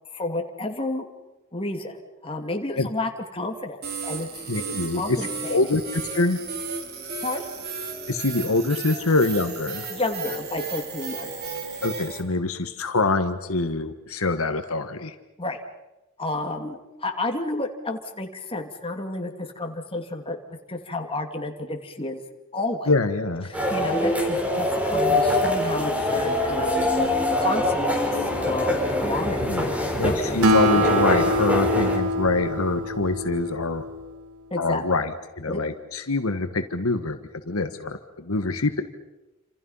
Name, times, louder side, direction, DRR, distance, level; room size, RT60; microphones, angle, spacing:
voice 1, 0.1-1.1 1.5-4.3 4.9-5.6 7.2-7.4 9.9-11.6 15.4-15.6 16.2-22.2 22.5-22.9 23.5-26.9 27.4-30.4 30.7-30.9 34.5-35.1 35.5-35.6, left 2 dB, 25° left, 3 dB, 2.7 m, -31 dB
sound 1, 3.8-12.2, right 4 dB, 50° right, 3.8 m, -34 dB
voice 2, 4.5-5.2 5.5-6.4 8.1-9.8 11.8-15.1 22.9-23.5 29.4-33.8 34.6-37.2 37.4-38.8, left 3 dB, 80° left, 8 dB, 1.6 m, -25 dB
sound 2, 23.5-32.0, left 1 dB, 5° right, 4.6 m, -24 dB
Acoustic guitar, 30.4-34.1, equal, 90° right, 2.7 m, -24 dB
28.5 x 27.0 x 5.7 m, 0.99 s
head